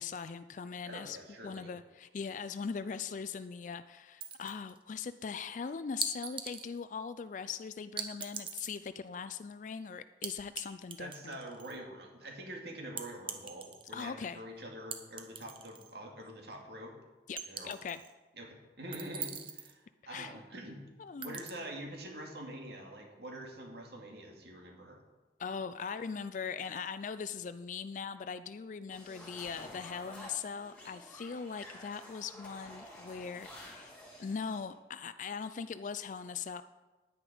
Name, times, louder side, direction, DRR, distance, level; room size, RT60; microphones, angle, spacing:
voice 1, 0.0-1.2 1.4-11.4 13.9-14.4 17.3-18.0 20.0-20.4 21.0-21.4 25.4-33.9 34.2-36.6, left 6 dB, 45° left, 13 dB, 0.3 m, -40 dB
voice 2, 0.8-1.7 11.0-16.9 17.5-17.7 18.4-20.8 21.2-25.0, right 1 dB, 65° right, 1 dB, 2.2 m, -45 dB
sound 1, 4.2-4.8 6.0-6.7 8.0-8.8 10.2-10.6 10.9-11.8 13.0-14.0 14.9-15.9 16.3-16.4 17.4-18.1 18.9-19.7 21.2-21.5, right 7 dB, 30° right, 0.9 m, -41 dB
sound 2, 28.9-34.6, left 1 dB, 10° left, 3.2 m, -51 dB
10.5 x 9.8 x 5.0 m, 1.2 s
head